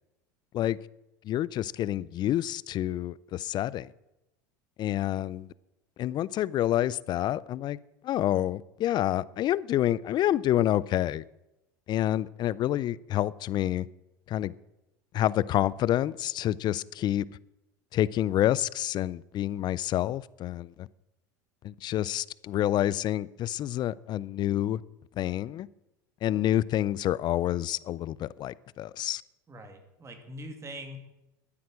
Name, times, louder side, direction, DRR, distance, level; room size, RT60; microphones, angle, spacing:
voice 1, 1.2-3.9 4.8-5.5 6.0-7.8 8.0-11.2 11.9-13.9 14.3-14.5 15.1-17.2 17.9-20.9 21.6-24.8 25.2-25.7 26.2-29.2, left 12 dB, 40° left, 0.5 m, -28 dB
voice 2, 29.5-31.0, equal, 25° right, 2.4 m, -42 dB
12.5 x 9.5 x 6.3 m
hypercardioid pair, 90°, 11 cm